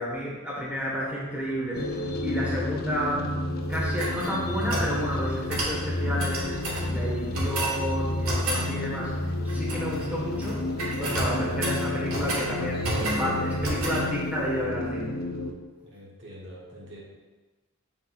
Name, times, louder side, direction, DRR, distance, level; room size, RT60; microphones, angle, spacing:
voice 1, 0.0-1.9 2.2-3.3 3.7-6.6 6.9-10.6 11.0-15.1, equal, 5° right, -6 dB, 1.6 m, -31 dB
sound 1, 1.7-15.5, left 1 dB, 45° left, 0.7 m, -30 dB
sound 2, 3.7-4.9 5.5-5.8 6.2-6.9 7.3-7.8 8.2-8.7 9.5-10.1 10.3-10.5 10.8-12.5 12.8-13.3 13.6-14.0, right 1 dB, 80° right, 2.0 m, -31 dB
voice 2, 15.9-17.0, equal, 55° right, -3 dB, 1.3 m, -44 dB
7.9 x 7.7 x 2.6 m, 1.2 s
head